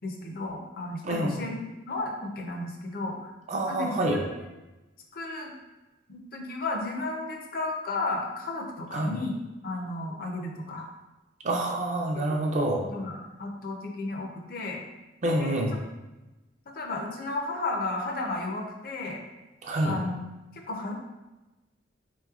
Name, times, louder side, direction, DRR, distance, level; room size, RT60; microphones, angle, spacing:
voice 1, 0.0-3.3 3.7-4.3 5.1-5.5 6.1-10.9 12.1-12.3 12.9-14.8 15.4-15.5 16.7-19.2 19.8-20.2 20.7-20.9, left 2 dB, 50° left, 1 dB, 0.5 m, -33 dB
voice 2, 1.0-1.3 3.5-4.2 8.9-9.2 11.4-12.8 15.2-15.7 19.6-20.0, right 1 dB, 40° right, 0 dB, 0.4 m, -27 dB
4.0 x 3.0 x 2.3 m, 1.1 s
head